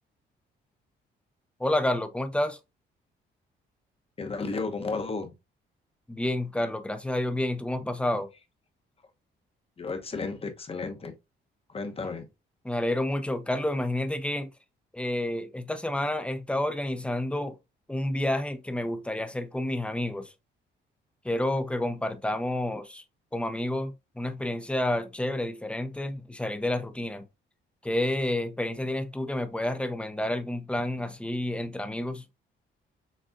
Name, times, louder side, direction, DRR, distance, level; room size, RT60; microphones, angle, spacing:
voice 1, 1.6-2.6 6.1-8.3 12.6-14.5 14.9-17.6 17.9-20.3 21.2-23.0 23.3-27.2 27.8-32.2, left 1 dB, 5° left, 0.6 m, -29 dB
voice 2, 4.2-5.3 9.8-11.1 11.7-12.3, left 4 dB, 30° left, 0.9 m, -33 dB
6.3 x 2.3 x 2.5 m
cardioid pair, 90°, 20 cm